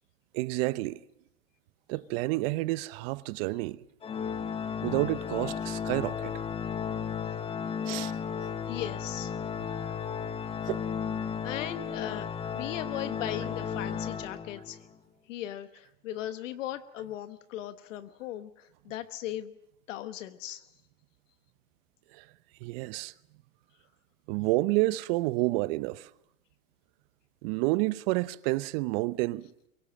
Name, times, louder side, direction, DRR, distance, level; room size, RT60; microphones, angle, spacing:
voice 1, 0.3-1.0 1.9-3.8 4.8-6.3 7.9-8.2 9.8-10.0 10.7-10.8 22.1-22.3 22.6-23.1 24.3-26.1 27.4-29.5, right 20 dB, 45° right, 0.8 m, -29 dB
Organ, 4.0-14.9, left 7 dB, 15° left, 0.7 m, -34 dB
voice 2, 8.7-9.3 11.4-12.3 12.5-14.8 15.3-19.5 19.9-20.7, left 12 dB, 65° left, 1.2 m, -38 dB
23.5 x 17.5 x 7.5 m
hypercardioid pair, 115°, 41 cm